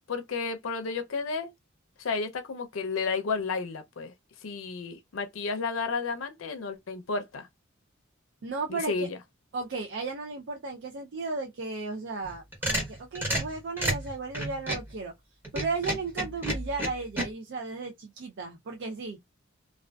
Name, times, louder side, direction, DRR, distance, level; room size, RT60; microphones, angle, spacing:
voice 1, 0.1-1.5 2.0-4.1 4.4-7.5 8.7-9.2, left 4 dB, 80° left, 0.5 m, -32 dB
voice 2, 8.4-9.1 9.5-15.1 15.5-19.2, right 3 dB, 60° right, 0.4 m, -35 dB
sound 1, 12.2-14.9 15.4-17.3, right 1 dB, 10° right, 0.9 m, -30 dB
2.4 x 2.3 x 2.2 m
head